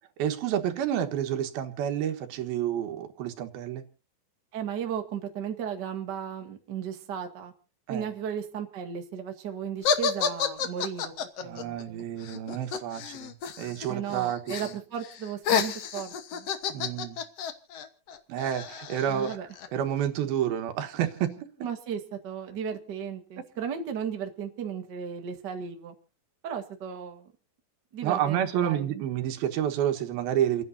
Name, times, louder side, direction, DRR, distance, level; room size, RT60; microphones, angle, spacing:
voice 1, 0.2-3.8 7.9-8.1 11.4-14.7 16.7-17.2 18.3-19.4 19.7-21.5 28.0-30.6, right 10 dB, 80° right, 7 dB, 3.2 m, -29 dB
voice 2, 4.5-7.5 7.9-12.1 13.9-16.5 19.1-19.5 21.6-25.9 26.4-27.3 27.9-29.0, right 8 dB, 40° right, 4 dB, 1.8 m, -35 dB
sound 1, 9.8-13.9 14.1-14.7 15.0-19.7, left 7 dB, 60° left, 1.7 m, -30 dB
29.0 x 10.5 x 2.7 m, 0.35 s
omnidirectional pair, 4.3 m